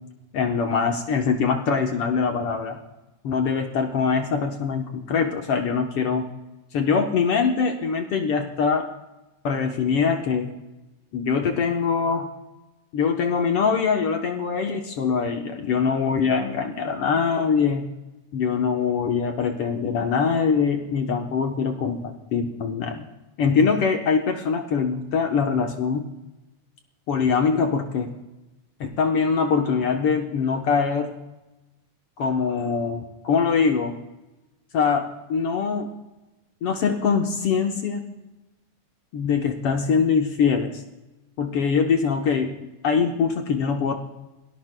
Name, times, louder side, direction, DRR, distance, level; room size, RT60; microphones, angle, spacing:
voice 1, 0.3-2.8 3.2-6.2 6.7-8.9 9.4-10.5 11.1-12.3 12.9-17.9 18.3-23.1 23.4-26.1 27.1-28.1 28.8-31.2 32.2-34.0 34.7-35.9 36.6-38.0 39.1-40.8 41.4-42.5 42.8-43.9, left 5 dB, 65° left, 4 dB, 1.4 m, -23 dB
28.5 x 18.5 x 2.2 m, 1.0 s
omnidirectional pair, 3.8 m